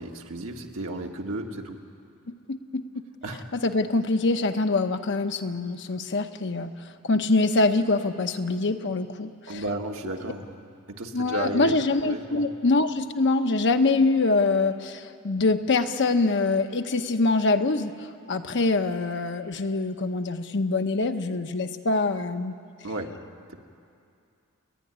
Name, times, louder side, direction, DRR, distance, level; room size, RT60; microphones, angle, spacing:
voice 1, 0.0-1.8 3.2-3.5 9.5-10.6 10.9-11.7 12.0-12.4 22.8-23.2 23.5-23.6, right 2 dB, 70° right, 2 dB, 1.7 m, -33 dB
voice 2, 2.3-2.8 3.5-9.6 11.1-17.9 18.3-22.5, left 3 dB, 55° left, 7 dB, 0.9 m, -24 dB
29.0 x 10.5 x 10.0 m, 2.5 s
head